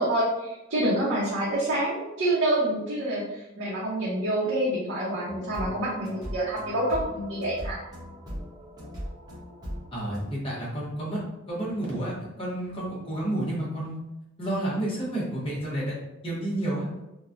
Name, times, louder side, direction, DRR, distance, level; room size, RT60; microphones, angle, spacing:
voice 1, 0.0-7.8, right 1 dB, 70° right, -8 dB, 0.8 m, -27 dB
sound 1, 5.3-10.3, equal, 20° right, 0.9 m, -39 dB
voice 2, 9.9-11.2 11.5-14.0 14.4-15.9 16.2-16.9, right 1 dB, 25° left, -5 dB, 0.9 m, -30 dB
3.0 x 2.2 x 2.5 m, 0.95 s
head